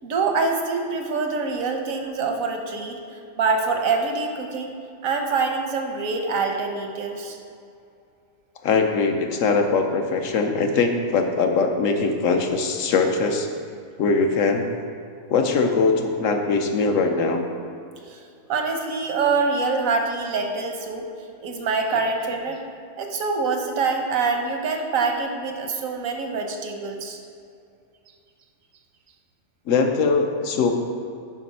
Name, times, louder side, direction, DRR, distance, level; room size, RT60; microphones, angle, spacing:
voice 1, 0.0-3.0 3.3-4.7 5.0-7.4 18.1-18.2 18.5-21.1 21.4-22.6 23.0-27.2, right 4 dB, 90° right, 3 dB, 1.4 m, -25 dB
voice 2, 8.6-13.5 14.0-14.7 15.3-17.4 21.9-22.0 29.7-30.7, left 4 dB, 75° left, 4 dB, 1.2 m, -21 dB
10.0 x 5.1 x 5.5 m, 2.5 s
omnidirectional pair, 1.4 m